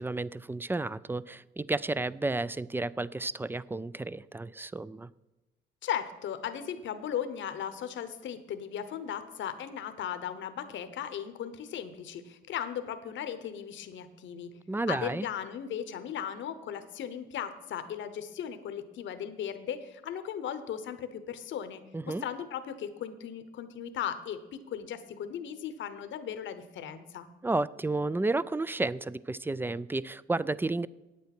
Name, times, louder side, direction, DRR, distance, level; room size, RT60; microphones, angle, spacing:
voice 1, 0.0-5.1 14.7-15.3 21.9-22.2 27.4-30.9, right 2 dB, 10° right, 19 dB, 0.3 m, -32 dB
voice 2, 5.8-14.6 14.9-27.3, left 9 dB, 70° left, 11 dB, 0.9 m, -37 dB
9.3 x 8.5 x 5.9 m, 1.1 s
cardioid pair, 90°, 20 cm